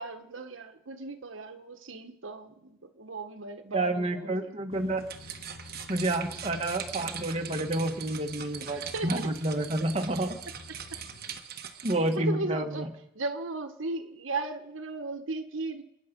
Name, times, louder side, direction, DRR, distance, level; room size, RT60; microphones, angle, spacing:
voice 1, 0.0-4.7 8.6-9.3 12.0-12.8 13.1-15.8, right 2 dB, 75° right, 7 dB, 1.3 m, -36 dB
voice 2, 3.7-5.1 5.9-10.4 11.8-12.9, right 1 dB, 30° right, 4 dB, 1.5 m, -29 dB
sound 1, 4.7-11.4, left 2 dB, 85° left, 1.7 m, -50 dB
sound 2, 5.0-12.2, right 8 dB, 50° right, 1.2 m, -41 dB
28.0 x 9.6 x 5.3 m, 0.81 s
head